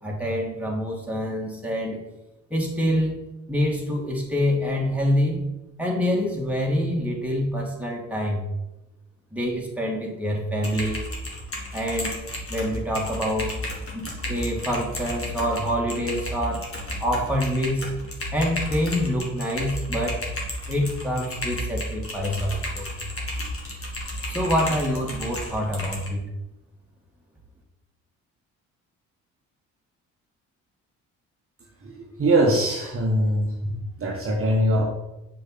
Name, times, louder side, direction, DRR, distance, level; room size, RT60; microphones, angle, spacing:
voice 1, 0.0-2.0 2.5-3.1 3.5-5.4 5.8-8.4 9.3-11.0 11.7-12.1 12.5-13.6 13.9-16.7 17.0-17.9 18.3-20.2 20.7-22.9 24.3-26.2, equal, 5° right, -2 dB, 2.4 m, -26 dB
Typing, 10.6-26.1, left 1 dB, 35° left, 2.6 m, -33 dB
voice 2, 31.8-34.8, right 1 dB, 35° right, -1 dB, 1.5 m, -22 dB
6.5 x 6.0 x 4.2 m, 0.95 s
hypercardioid pair, 50°, 39 cm